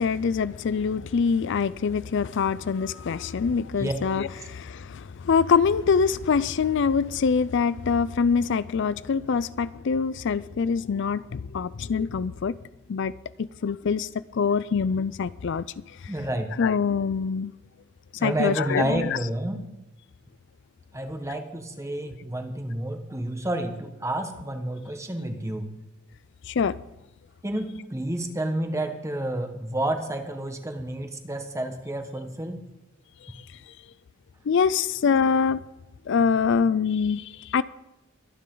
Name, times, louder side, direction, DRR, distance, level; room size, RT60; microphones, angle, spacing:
voice 1, 0.0-12.6 12.9-13.1 13.4-14.1 14.3-15.7 16.0-16.1 16.6-17.5 18.2-19.2 26.5-26.8 34.5-35.6 36.1-37.6, left 6 dB, 60° left, 0.4 m, -24 dB
voice 2, 16.1-16.5 18.2-19.6 20.9-25.7 27.4-32.6, right 1 dB, 15° right, 1.5 m, -30 dB
23.0 x 9.8 x 3.9 m
head